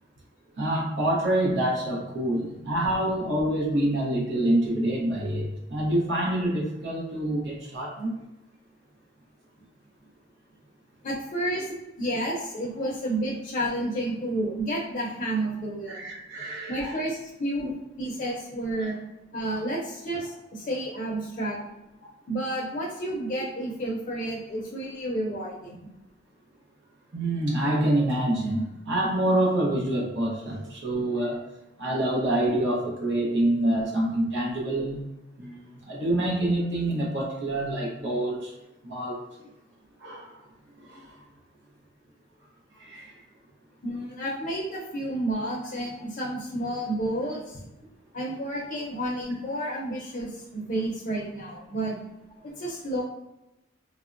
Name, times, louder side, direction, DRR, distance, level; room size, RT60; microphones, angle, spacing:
voice 1, 0.6-8.1 15.9-17.0 17.6-17.7 22.0-22.1 27.1-31.4 31.8-35.0 35.4-38.5 38.8-39.3 40.0-40.4 40.8-41.1 42.8-43.1, right 1 dB, 65° right, -3 dB, 0.8 m, -26 dB
voice 2, 11.0-11.7 12.0-16.0 16.7-17.7 18.0-19.0 19.3-21.6 22.3-25.9 39.4-39.5 43.8-47.7 48.1-52.0 52.4-53.0, right 1 dB, 40° left, -3 dB, 0.5 m, -31 dB
3.4 x 2.1 x 2.5 m, 0.94 s
head